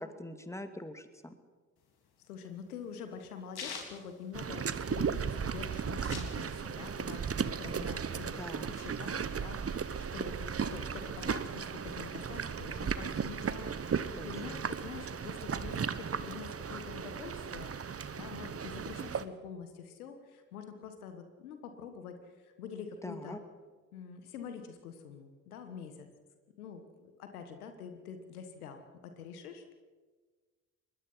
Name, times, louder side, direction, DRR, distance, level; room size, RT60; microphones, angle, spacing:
voice 1, 0.0-1.3 8.4-8.7 14.1-14.5 23.0-23.4, left 1 dB, 5° left, 8 dB, 2.4 m, -43 dB
sound 1, 1.8-5.0 5.3-5.4 5.6-6.9 7.2-8.4, left 5 dB, 60° left, 3.9 m, -45 dB
voice 2, 2.3-23.4 23.9-26.1 26.6-29.7, left 6 dB, 90° left, 7 dB, 1.6 m, -46 dB
sound 2, 4.3-19.2, right 6 dB, 35° right, 1.2 m, -36 dB
25.0 x 20.5 x 5.7 m, 1.4 s
hypercardioid pair, 45°, 43 cm